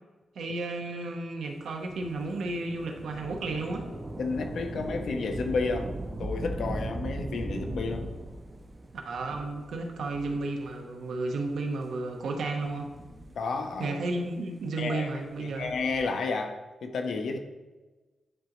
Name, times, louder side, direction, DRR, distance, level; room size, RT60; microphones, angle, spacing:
voice 1, 0.3-3.9 9.0-12.9 13.8-15.7, right 2 dB, 80° right, 2 dB, 0.9 m, -33 dB
Thunder / Rain, 1.9-10.8 11.6-11.7 12.6-13.9 15.4-16.2, right 1 dB, 20° right, 0.5 m, -39 dB
voice 2, 4.2-5.9 6.2-8.1 13.4-14.0 14.8-17.4, left 4 dB, 70° left, 5 dB, 0.7 m, -31 dB
10.0 x 3.8 x 3.1 m, 1.2 s
wide cardioid pair, 160°, 0 cm